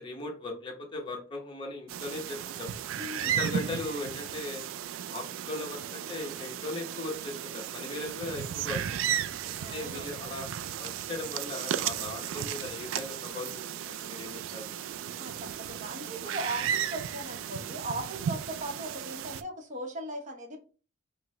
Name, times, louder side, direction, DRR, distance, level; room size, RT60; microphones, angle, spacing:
voice 1, 0.0-2.7 3.2-4.6 5.1-9.1 9.7-10.5 10.8-14.7, left 2 dB, 25° left, 0 dB, 0.8 m, -38 dB
sound 1, 1.9-19.4, right 9 dB, 75° right, 0.3 m, -35 dB
voice 2, 2.9-3.5 9.6-10.2 15.1-20.6, right 1 dB, 35° right, 3 dB, 0.8 m, -38 dB
5.6 x 2.1 x 3.0 m, 0.36 s
head